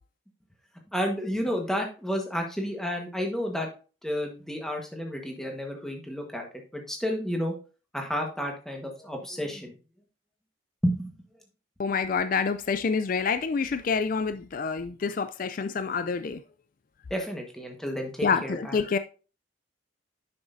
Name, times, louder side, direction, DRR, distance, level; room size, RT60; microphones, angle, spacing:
voice 1, 0.9-3.7 4.0-6.4 6.7-7.5 7.9-9.8 10.8-11.1 17.1-18.7, equal, ahead, 1.3 m, -31 dB
voice 2, 11.8-16.4 18.2-19.0, left 5 dB, 45° left, 0.3 m, -27 dB
9.4 x 6.3 x 2.6 m
head